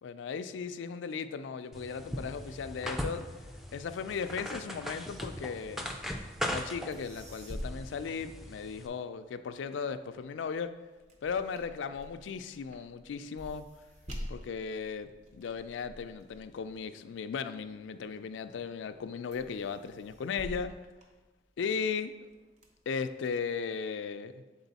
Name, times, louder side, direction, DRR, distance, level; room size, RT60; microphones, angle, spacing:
voice 1, 0.0-3.2 3.7-5.9 6.4-10.7 11.2-13.7 14.3-20.7 21.6-22.2 22.9-24.4, left 5 dB, 90° left, 10 dB, 0.4 m, -36 dB
sound 1, 1.7-8.9, equal, ahead, 0.3 m, -39 dB
sound 2, 6.9-9.0 9.5-18.1 18.6-19.0 19.3-21.8 22.3-23.3, equal, 40° right, 0.7 m, -47 dB
6.9 x 4.1 x 4.0 m, 1.2 s
head